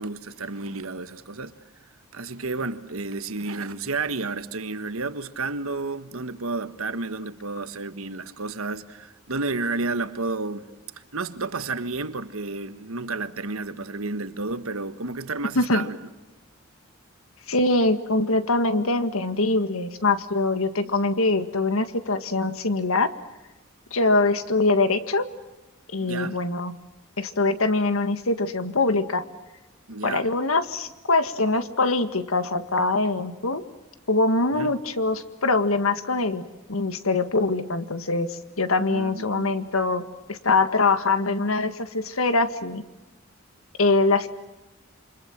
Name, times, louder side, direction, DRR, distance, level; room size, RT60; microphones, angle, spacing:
voice 1, 0.0-1.5 2.1-10.7 11.1-16.0 26.0-26.4 29.9-30.3 34.5-34.7 38.8-39.5, right 3 dB, 85° right, 1.5 m, -31 dB
voice 2, 17.5-23.1 23.9-25.3 25.9-26.7 27.2-29.2 30.0-33.6 34.1-38.3 38.6-40.0 40.3-42.8 43.8-44.3, left 3 dB, 80° left, 1.8 m, -23 dB
28.0 x 25.5 x 7.4 m
head